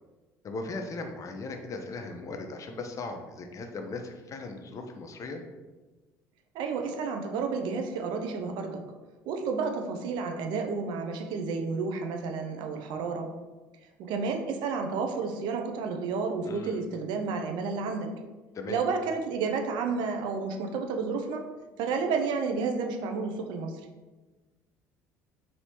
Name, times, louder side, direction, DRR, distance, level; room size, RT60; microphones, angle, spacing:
voice 1, 0.4-5.4 16.4-16.8 18.5-18.8, left 3 dB, 40° left, 5 dB, 0.5 m, -38 dB
voice 2, 6.5-8.8 9.3-13.3 14.0-18.1 18.7-21.4 21.8-23.8, right 4 dB, 65° right, 4 dB, 0.5 m, -31 dB
3.1 x 2.7 x 2.9 m, 1.2 s
hypercardioid pair, 70°, 8 cm